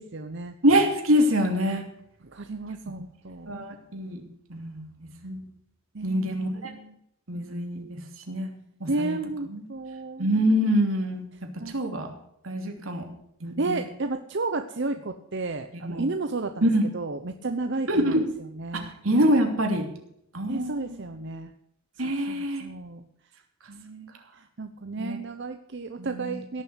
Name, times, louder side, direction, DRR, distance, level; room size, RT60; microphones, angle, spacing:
voice 1, 0.0-0.5 2.3-3.5 5.9-6.9 8.9-10.3 11.6-11.8 13.6-16.7 16.9-18.2 18.6-18.9 20.5-21.5 22.0-23.0 23.7-24.1 24.6-26.6, right 3 dB, 60° right, 7 dB, 0.8 m, -32 dB
voice 2, 0.6-1.9 3.5-4.2 4.5-4.9 5.2-5.4 6.0-6.7 7.3-8.0 8.3-8.5 8.8-9.2 9.5-9.6 10.2-12.1 12.4-13.0 13.4-13.8 15.8-16.0 16.6-16.9 17.9-18.3 18.7-19.9 20.3-21.1 22.0-22.6 25.0-25.2 26.0-26.3, equal, 85° right, 3 dB, 3.0 m, -25 dB
17.0 x 7.2 x 8.1 m, 0.73 s
head